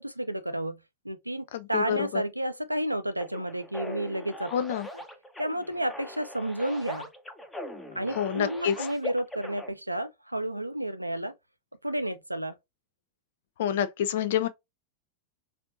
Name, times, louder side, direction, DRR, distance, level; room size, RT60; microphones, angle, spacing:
voice 1, 0.0-4.5 5.4-7.1 7.9-11.3 11.8-12.5, right 1 dB, 85° right, 0.4 m, -31 dB
voice 2, 1.5-2.2 4.5-4.9 8.1-8.8 13.6-14.5, left 9 dB, 55° left, 0.4 m, -27 dB
sound 1, 3.2-9.7, equal, 10° left, 0.7 m, -41 dB
4.3 x 2.5 x 2.5 m
figure-of-eight pair, 90°, 0 cm